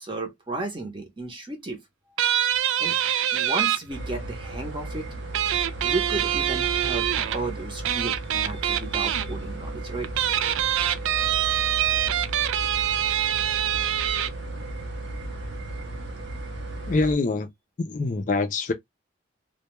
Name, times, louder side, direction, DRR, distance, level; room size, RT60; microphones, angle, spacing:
voice 1, 0.0-1.8 2.8-3.0 3.3-5.1 5.8-10.1, right 2 dB, 25° right, 0.7 m, -33 dB
sound 1, 2.2-3.8 5.3-7.4 7.8-9.2 10.0-14.3, right 11 dB, 80° right, 0.3 m, -24 dB
sound 2, 3.9-17.1, right 2 dB, 60° right, 0.7 m, -35 dB
voice 2, 16.9-17.5 17.8-18.7, left 3 dB, 40° left, 0.4 m, -24 dB
2.2 x 2.1 x 2.9 m
head